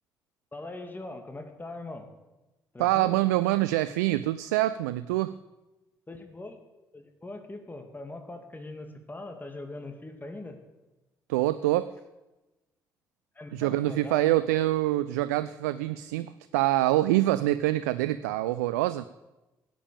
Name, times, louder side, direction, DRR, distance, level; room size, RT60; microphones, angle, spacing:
voice 1, 0.5-2.1 2.7-3.2 6.1-6.6 6.9-10.6 13.3-14.3, left 2 dB, 20° left, 6 dB, 2.5 m, -41 dB
voice 2, 2.8-5.3 11.3-11.9 13.5-19.0, right 16 dB, 85° right, 14 dB, 0.4 m, -25 dB
13.0 x 9.0 x 7.1 m, 1.1 s
hypercardioid pair, 50°, 9 cm